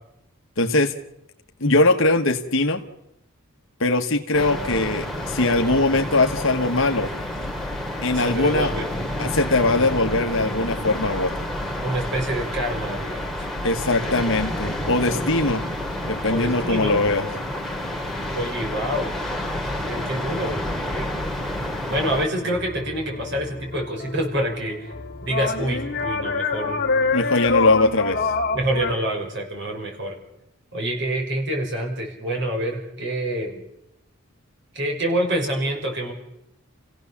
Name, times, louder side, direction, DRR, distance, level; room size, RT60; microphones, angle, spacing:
voice 1, 0.6-0.9 1.6-2.8 3.8-7.1 8.0-8.7 9.2-11.3 13.6-15.6 16.1-17.3 27.1-28.3, left 2 dB, 60° left, 4 dB, 1.3 m, -21 dB
sound 1, 4.3-22.3, left 1 dB, ahead, 2.3 m, -29 dB
voice 2, 8.2-8.8 11.8-13.5 16.2-17.0 18.3-19.1 19.9-20.6 20.9-21.1 21.9-24.9 25.2-26.8 28.5-30.2 30.7-33.6 34.7-36.1, right 1 dB, 55° right, 1 dB, 6.1 m, -27 dB
sound 2, 22.3-28.9, left 4 dB, 45° left, 1.8 m, -26 dB
28.0 x 16.5 x 7.2 m, 0.83 s
head